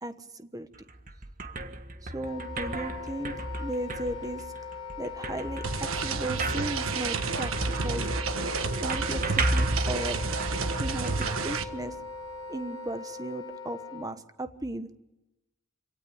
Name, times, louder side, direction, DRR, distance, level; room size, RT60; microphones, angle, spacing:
voice 1, 0.0-0.7 2.0-4.4 5.0-7.5 7.8-8.1 8.8-10.2 10.8-11.9 12.5-14.9, right 1 dB, 15° right, 10 dB, 1.2 m, -36 dB
sound 1, 0.7-12.2, right 1 dB, 40° right, 1.5 m, -34 dB
Wind instrument woodwind instrument, 2.1-14.1, left 4 dB, 25° left, 3.6 m, -41 dB
sound 2, 5.6-11.6, right 4 dB, 85° right, 1.5 m, -31 dB
26.5 x 17.5 x 8.8 m, 0.97 s
head